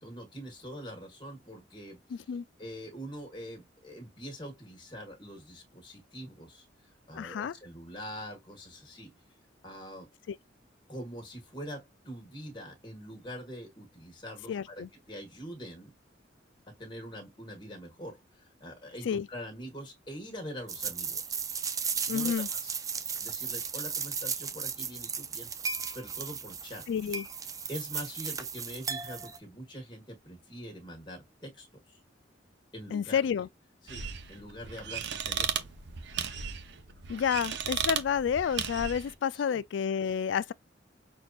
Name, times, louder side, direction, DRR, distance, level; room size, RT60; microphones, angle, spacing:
voice 1, 0.0-2.3 2.6-9.1 9.6-10.1 10.9-15.9 16.7-21.3 22.1-22.7 23.2-25.5 25.9-26.9 27.7-32.0 32.7-33.5 33.8-35.7 39.3-39.6, equal, 25° left, 1.6 m, -44 dB
voice 2, 2.1-2.4 7.1-7.5 14.5-14.9 19.1-19.3 22.1-22.5 26.9-27.2 32.9-33.5 37.1-40.5, left 7 dB, 75° left, 0.3 m, -30 dB
sound 1, 20.7-29.4, right 6 dB, 20° right, 0.4 m, -35 dB
sound 2, 33.9-39.1, right 7 dB, 65° right, 0.7 m, -35 dB
6.2 x 2.7 x 2.4 m
head